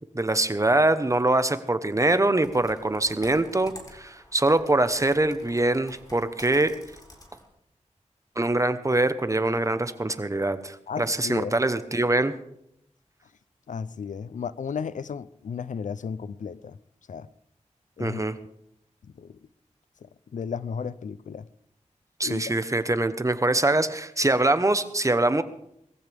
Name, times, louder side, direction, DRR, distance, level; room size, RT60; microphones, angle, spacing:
voice 1, 0.1-6.8 8.4-10.8 11.1-12.3 18.0-18.3 22.2-25.4, right 2 dB, 25° right, 11 dB, 1.1 m, -23 dB
Computer keyboard, 2.4-7.5, left 1 dB, 30° left, 3.5 m, -49 dB
voice 2, 10.9-11.5 13.7-16.8 17.1-17.3 18.0-18.2 19.0-19.4 20.0-21.5 22.2-22.5, left 6 dB, 85° left, 18 dB, 0.5 m, -34 dB
21.0 x 15.0 x 3.5 m, 0.76 s
wide cardioid pair, 60°, 13 cm